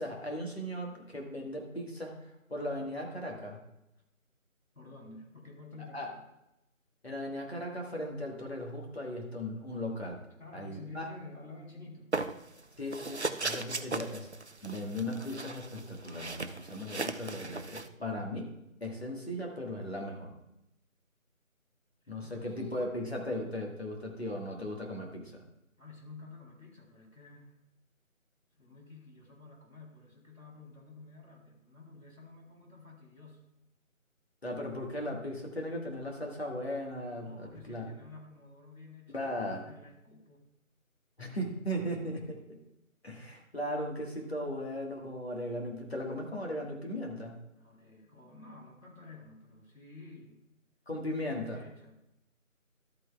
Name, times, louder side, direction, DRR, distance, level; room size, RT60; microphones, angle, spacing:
voice 1, 0.0-3.6 5.9-6.1 7.0-10.2 10.5-11.1 12.8-14.3 14.6-20.3 22.1-25.4 34.4-37.9 39.1-39.7 41.2-42.6 43.0-47.4 50.9-51.6, left 1 dB, 45° left, 0 dB, 1.7 m, -37 dB
voice 2, 4.7-6.2 10.4-12.1 22.0-23.1 25.8-27.5 28.6-33.4 37.2-40.5 47.6-50.3 51.2-51.9, left 3 dB, 75° left, -1 dB, 3.2 m, -51 dB
sound 1, 12.1-12.6 12.9-17.9, right 3 dB, 55° right, 0.5 m, -37 dB
12.5 x 8.5 x 2.3 m, 0.87 s
figure-of-eight pair, 170°, 42 cm